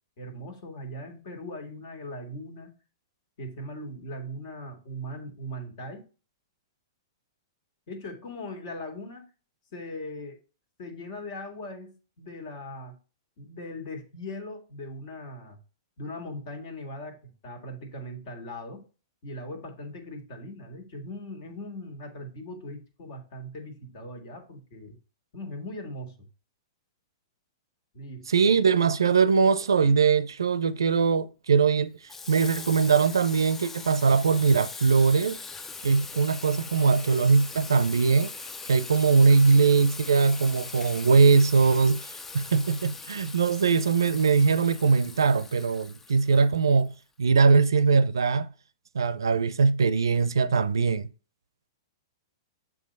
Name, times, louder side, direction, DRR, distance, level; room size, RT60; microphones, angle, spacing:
voice 1, 0.2-2.8 3.4-6.1 7.9-9.3 9.7-10.4 10.8-13.0 13.4-15.6 16.0-18.8 19.2-25.0 25.3-26.1 27.9-28.5, left 1 dB, 55° left, 1.9 m, -39 dB
voice 2, 28.3-31.9 32.3-35.4 35.8-38.3 38.7-42.1 42.3-46.9 47.2-48.5 48.9-51.1, right 5 dB, 85° right, 0.5 m, -21 dB
Water tap faucet / Sink (filling or washing), 32.1-46.9, left 4 dB, 15° left, 0.4 m, -41 dB
7.2 x 2.9 x 5.3 m
hypercardioid pair, 120°, 2 cm